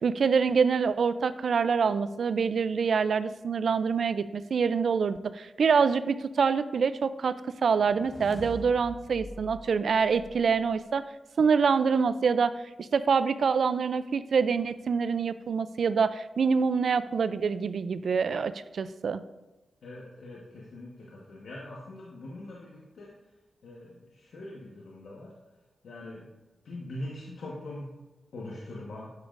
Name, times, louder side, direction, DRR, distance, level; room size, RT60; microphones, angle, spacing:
voice 1, 0.0-7.4 7.6-11.0 11.4-12.5 12.8-19.2, right 5 dB, 70° right, 13 dB, 0.3 m, -26 dB
sound 1, 7.7-11.0, left 1 dB, 35° left, 0.9 m, -45 dB
voice 2, 19.8-23.1 23.6-25.3 25.8-26.3 26.6-28.0 28.3-29.1, left 1 dB, 80° left, -4 dB, 1.2 m, -42 dB
9.5 x 7.0 x 2.5 m, 1.1 s
cardioid pair, 75°, 0 cm